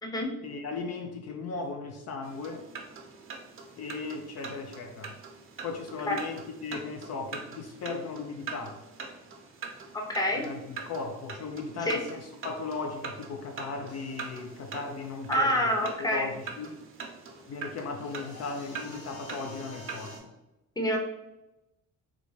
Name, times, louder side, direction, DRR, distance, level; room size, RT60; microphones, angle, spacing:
voice 1, 0.4-2.7 3.8-5.1 5.6-8.8 10.3-15.7 16.0-16.8 17.5-20.3, left 4 dB, 60° left, 4 dB, 0.5 m, -37 dB
sound 1, 2.2-20.2, right 5 dB, 45° right, 0.7 m, -43 dB
voice 2, 9.9-10.4 11.9-12.0 15.3-16.3 20.8-21.0, equal, 15° left, 1 dB, 0.7 m, -27 dB
sound 2, 13.9-15.9 17.9-20.2, left 3 dB, 75° left, 1.2 m, -49 dB
3.7 x 2.2 x 3.1 m, 0.95 s
cardioid pair, 90°, 30 cm